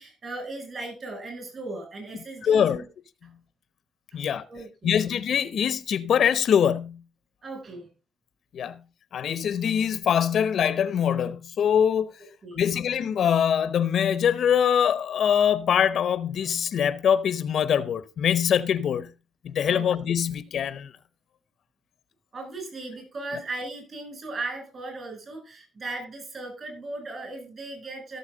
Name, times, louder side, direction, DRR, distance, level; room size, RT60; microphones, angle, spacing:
voice 1, 0.0-2.8 3.2-3.3 4.1-5.0 7.4-7.9 8.6-8.7 12.4-12.7 19.6-19.9 22.3-28.2, right 2 dB, 40° right, 7.7 m, -37 dB
voice 2, 2.4-2.8 4.1-4.4 4.8-7.0 8.5-8.8 9.1-12.1 12.6-19.1 19.4-20.9, left 8 dB, 65° left, 0.8 m, -23 dB
15.5 x 7.1 x 3.9 m
cardioid pair, 90°, 0 cm